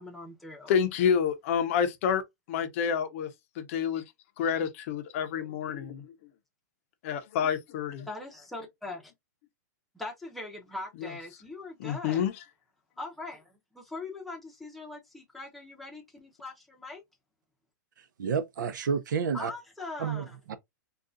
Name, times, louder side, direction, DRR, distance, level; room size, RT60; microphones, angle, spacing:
voice 1, 0.0-0.8 8.1-9.1 9.9-12.3 13.0-17.0 19.3-20.4, left 2 dB, ahead, 0.7 m, -41 dB
voice 2, 0.7-3.3 3.6-4.0 4.4-6.1 7.0-8.1 11.8-12.3, left 7 dB, 45° left, 0.6 m, -28 dB
voice 3, 18.2-19.5 20.0-20.6, right 6 dB, 85° right, 0.6 m, -30 dB
3.7 x 2.3 x 2.5 m
hypercardioid pair, 155°, 10 cm